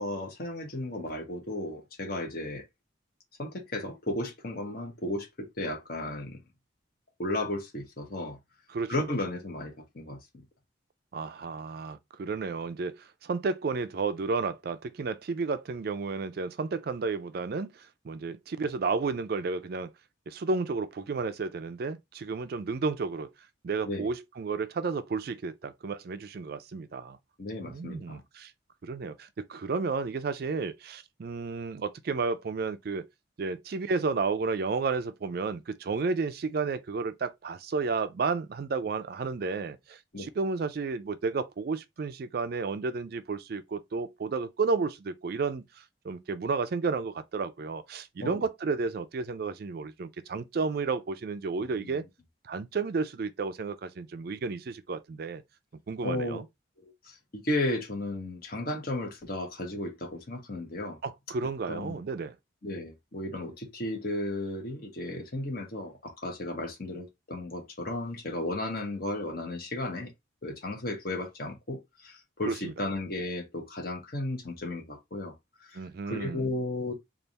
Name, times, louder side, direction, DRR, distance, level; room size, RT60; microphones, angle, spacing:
voice 1, 0.0-2.7 3.4-6.4 7.2-8.4 8.9-10.4 23.8-24.1 27.4-28.2 40.1-40.3 48.2-48.4 51.8-51.9 56.0-56.4 56.8-61.0 61.7-62.0 62.6-70.1 70.4-75.3 75.6-75.8 76.0-76.9, left 1 dB, 50° left, 1.0 m, -34 dB
voice 2, 11.1-19.9 20.3-23.3 23.6-27.2 27.6-28.5 28.8-33.1 33.4-52.0 52.4-55.4 55.9-56.4 61.0-62.4 72.5-72.7 75.7-76.4, right 4 dB, 50° right, 0.4 m, -32 dB
3.4 x 2.5 x 3.9 m
head